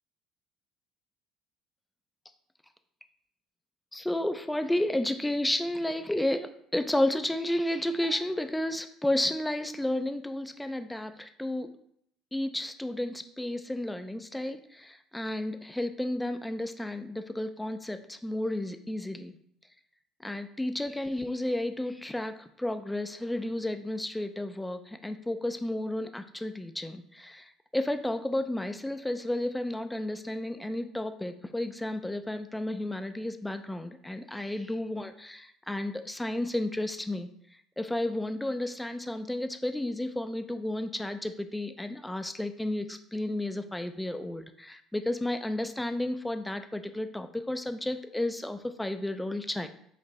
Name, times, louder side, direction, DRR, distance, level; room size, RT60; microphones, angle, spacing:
voice 1, 3.9-11.7 12.3-19.3 20.2-37.3 37.8-49.7, left 1 dB, 10° left, 8 dB, 0.5 m, -32 dB
6.5 x 2.6 x 3.2 m, 0.68 s
hypercardioid pair, 65°, 0 cm